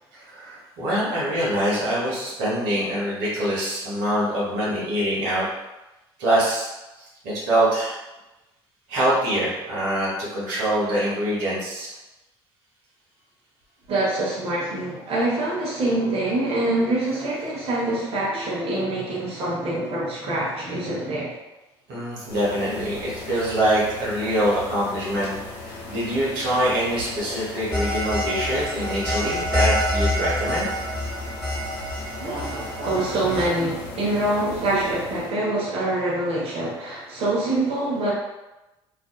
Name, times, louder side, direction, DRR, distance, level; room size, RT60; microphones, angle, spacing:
voice 1, 0.1-5.5 6.2-6.7 7.0-7.9 8.9-11.9 21.9-25.3 25.6-30.7, right 1 dB, 75° right, -8 dB, 1.0 m, -24 dB
voice 2, 13.9-21.3 32.1-38.1, right 2 dB, 50° right, -6 dB, 0.9 m, -25 dB
sound 1, 22.3-35.3, left 2 dB, 70° left, 0.8 m, -38 dB
sound 2, 27.7-33.5, equal, ahead, 1.3 m, -27 dB
2.5 x 2.4 x 2.2 m, 1.0 s
hypercardioid pair, 65°, 13 cm